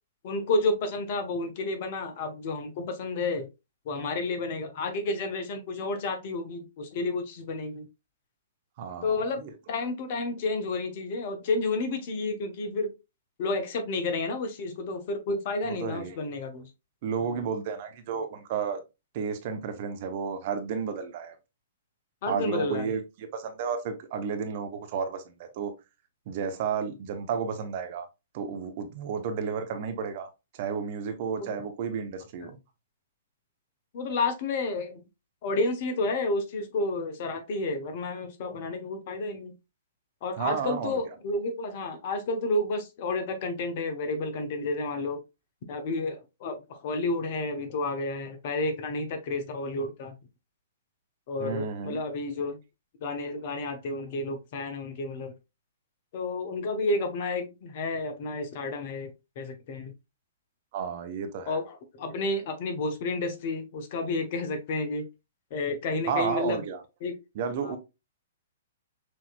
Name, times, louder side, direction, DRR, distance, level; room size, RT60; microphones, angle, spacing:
voice 1, 0.2-3.5 3.8-7.9 9.0-12.9 13.4-16.7 17.2-17.4 22.2-22.9 31.4-31.5 33.9-35.0 35.4-39.5 40.2-45.2 45.7-50.1 51.3-52.6 53.0-55.3 56.1-59.9 61.5-65.1 65.5-66.6 67.0-67.2 67.6-67.8, left 2 dB, 45° left, 1.0 m, -31 dB
voice 2, 8.8-9.5 15.6-16.3 17.0-18.8 19.1-21.3 22.3-25.7 26.3-28.1 28.3-32.6 40.4-41.0 51.4-52.0 60.7-61.6 66.1-66.8 67.3-67.8, right 6 dB, 45° right, 0.9 m, -32 dB
6.2 x 2.9 x 2.3 m
figure-of-eight pair, 115°, 0 cm